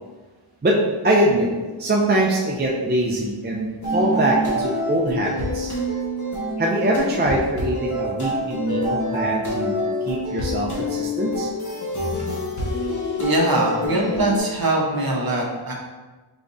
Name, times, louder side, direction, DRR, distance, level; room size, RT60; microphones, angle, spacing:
voice 1, 1.0-1.5 1.8-5.7 6.6-9.8 10.0-11.5, right 1 dB, 20° right, -2 dB, 0.4 m, -22 dB
sound 1, 3.8-14.4, left 1 dB, 35° left, 1.2 m, -26 dB
voice 2, 13.2-15.7, right 2 dB, 45° right, -2 dB, 0.9 m, -22 dB
4.8 x 3.4 x 2.6 m, 1.3 s
wide cardioid pair, 100°, 50 cm